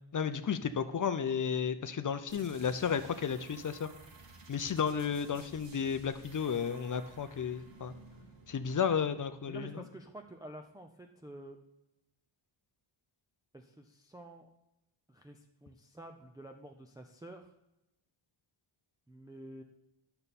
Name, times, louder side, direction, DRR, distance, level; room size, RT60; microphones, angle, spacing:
voice 1, 0.1-3.9 4.5-7.9 8.5-9.8, left 7 dB, 40° left, 11 dB, 0.6 m, -33 dB
sound 1, 2.3-9.9, right 2 dB, 60° right, 1.5 m, -55 dB
voice 2, 9.4-11.6 13.5-14.5 15.1-17.5 19.1-19.6, right 1 dB, 10° right, 2 dB, 0.4 m, -49 dB
11.0 x 6.8 x 4.2 m, 0.90 s
wide cardioid pair, 165°, 49 cm